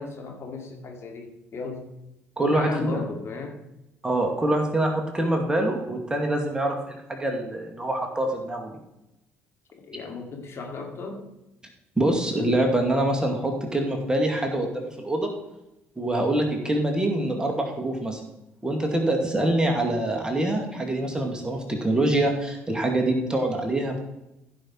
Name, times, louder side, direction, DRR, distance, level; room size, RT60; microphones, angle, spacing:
voice 1, 0.0-1.9 2.4-3.6 9.7-11.3, left 4 dB, 40° left, 1 dB, 2.5 m, -35 dB
voice 2, 2.4-3.0 4.0-8.8 12.0-15.3 16.0-18.2 18.6-24.0, right 1 dB, 10° right, 2 dB, 2.3 m, -25 dB
15.5 x 5.7 x 4.6 m, 0.89 s
figure-of-eight pair, 50°, 7 cm